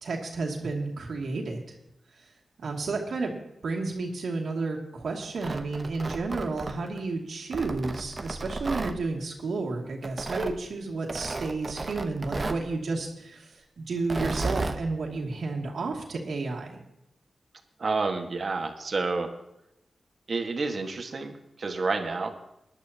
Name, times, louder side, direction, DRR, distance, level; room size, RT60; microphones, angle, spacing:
voice 1, 0.0-1.7 2.2-2.3 2.6-3.4 3.6-16.8, right 3 dB, 85° right, 0 dB, 2.6 m, -32 dB
Tearing, 5.2-7.0 7.5-9.0 10.0-10.5 11.1-12.7 14.0-14.8, right 3 dB, 35° right, 0.9 m, -33 dB
voice 2, 17.8-19.3 20.3-22.3, right 3 dB, 55° right, 5 dB, 1.6 m, -29 dB
20.0 x 11.5 x 2.9 m, 0.89 s
wide cardioid pair, 95°, 0 cm